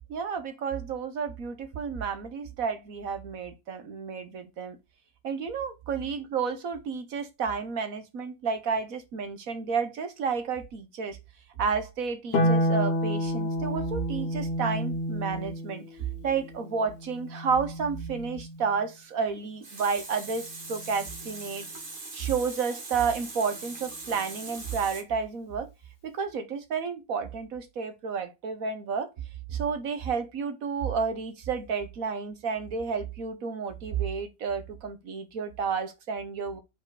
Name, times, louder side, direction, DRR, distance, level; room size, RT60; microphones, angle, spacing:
voice 1, 0.1-4.8 5.2-11.2 11.6-21.7 22.1-25.7 26.0-29.1 29.5-36.6, right 5 dB, 60° right, 1.3 m, -31 dB
Harp, 12.3-18.8 20.5-21.5, equal, 70° left, 1.9 m, -30 dB
Water tap faucet, 19.3-25.0, right 3 dB, 30° right, 1.7 m, -41 dB
4.9 x 4.4 x 4.7 m
omnidirectional pair, 1.8 m